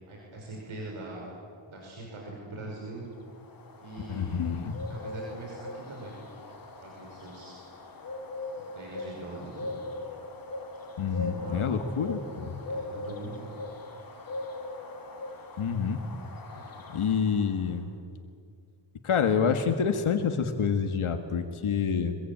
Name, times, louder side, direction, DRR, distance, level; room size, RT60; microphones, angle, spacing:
voice 1, 0.1-1.3 1.7-3.0 3.8-4.4 4.9-6.2 6.8-7.6 8.7-9.8 11.0-11.8 12.7-13.6 16.5-16.7, right 2 dB, 80° right, -2 dB, 6.0 m, -42 dB
sound 1, 3.1-17.7, left 2 dB, 45° left, 2.9 m, -41 dB
voice 2, 4.1-4.8 11.0-12.6 15.6-16.0 16.9-17.9 19.0-22.2, left 6 dB, 90° left, 6 dB, 1.8 m, -27 dB
24.5 x 23.0 x 8.9 m, 2.3 s
wide cardioid pair, 140°, 48 cm